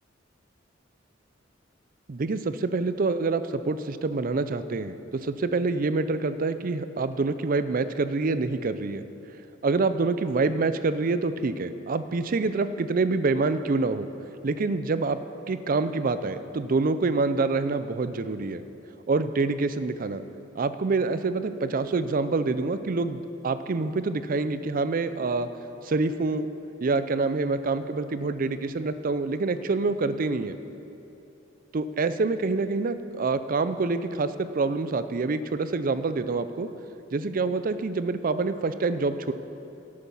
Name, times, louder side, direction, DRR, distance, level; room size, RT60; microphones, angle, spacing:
voice 1, 2.1-9.0 9.6-14.1 14.4-15.2 15.5-18.6 19.1-20.2 20.5-25.5 25.8-26.5 26.8-30.6 31.7-36.7 37.1-39.3, right 3 dB, 50° right, 12 dB, 0.5 m, -26 dB
13.5 x 8.6 x 5.5 m, 2.8 s
head